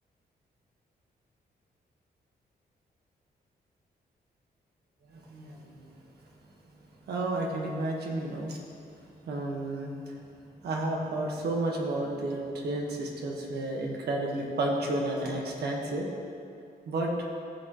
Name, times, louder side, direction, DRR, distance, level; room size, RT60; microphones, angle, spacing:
voice 1, 5.1-5.8 7.1-8.6 9.2-10.1 10.6-16.1 16.9-17.1, right 2 dB, 80° right, -1 dB, 1.5 m, -31 dB
15.0 x 7.0 x 3.1 m, 2.5 s
wide cardioid pair, 135°, 17 cm